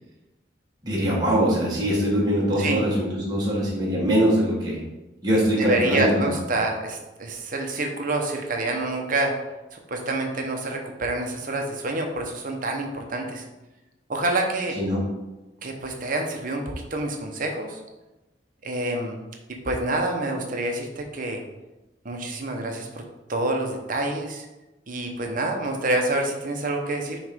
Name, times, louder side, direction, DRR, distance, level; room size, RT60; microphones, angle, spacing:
voice 1, 0.8-4.8 5.2-6.3 14.8-15.0, equal, 25° right, -7 dB, 1.4 m, -22 dB
voice 2, 5.6-9.3 9.7-13.4 14.1-14.8 15.6-17.8 18.6-19.2 19.6-21.4 22.0-22.9 23.3-24.5 24.9-27.2, right 2 dB, 50° right, 3 dB, 1.0 m, -27 dB
6.5 x 3.3 x 5.2 m, 1.0 s
head